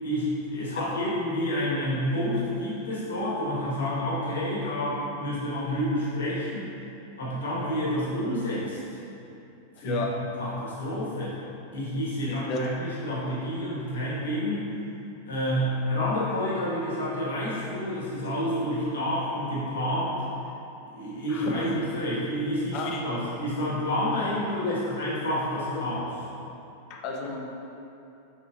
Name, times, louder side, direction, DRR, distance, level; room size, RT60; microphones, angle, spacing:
voice 1, 0.0-6.7 7.2-9.0 9.8-11.4 11.7-14.6 15.2-20.2 20.9-26.1, equal, 65° left, -7 dB, 1.2 m, -29 dB
voice 2, 9.8-10.1 12.2-12.6 21.3-21.8 22.7-23.0 24.6-24.8 26.9-27.4, left 4 dB, 40° left, 0 dB, 0.6 m, -32 dB
5.5 x 3.7 x 2.4 m, 2.8 s
figure-of-eight pair, 90°, 0 cm